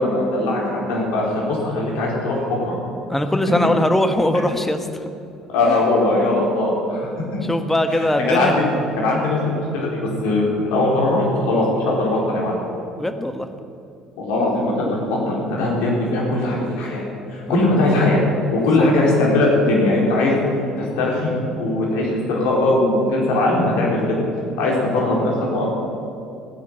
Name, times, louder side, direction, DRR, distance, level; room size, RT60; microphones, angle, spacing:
voice 1, 0.0-2.7 5.5-7.1 8.0-8.5 9.0-12.6 14.2-17.0 17.3-18.2 18.5-20.3 20.8-24.2 24.6-25.7, left 2 dB, 60° left, -3 dB, 4.5 m, -20 dB
voice 2, 3.1-4.9 5.7-5.8 7.5-8.5 13.0-13.5 17.5-17.6 18.6-19.1, left 1 dB, 10° left, 8 dB, 1.3 m, -21 dB
16.5 x 9.9 x 7.7 m, 2.6 s
figure-of-eight pair, 55°, 3 cm